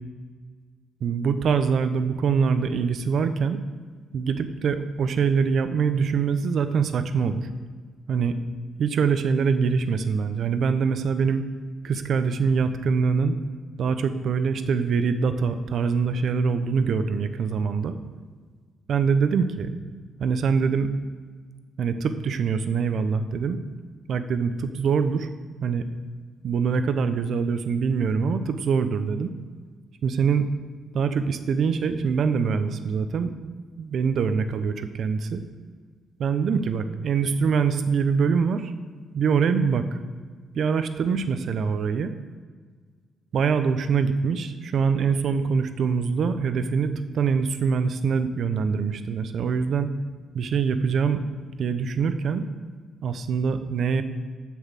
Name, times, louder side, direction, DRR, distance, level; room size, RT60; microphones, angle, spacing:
voice 1, 1.0-3.6 4.1-7.5 8.1-8.3 8.8-11.4 11.8-13.4 13.8-18.0 18.9-19.7 20.2-20.9 21.8-23.6 24.1-25.3 25.6-25.9 26.4-29.3 30.0-30.5 30.9-33.5 33.8-35.4 36.2-38.7 39.1-40.0 40.5-42.1 43.3-49.9 50.3-51.3 51.6-52.4 53.0-54.0, right 5 dB, 60° right, 10 dB, 0.8 m, -24 dB
8.2 x 6.3 x 7.5 m, 1.5 s
cardioid pair, 90°, 0 cm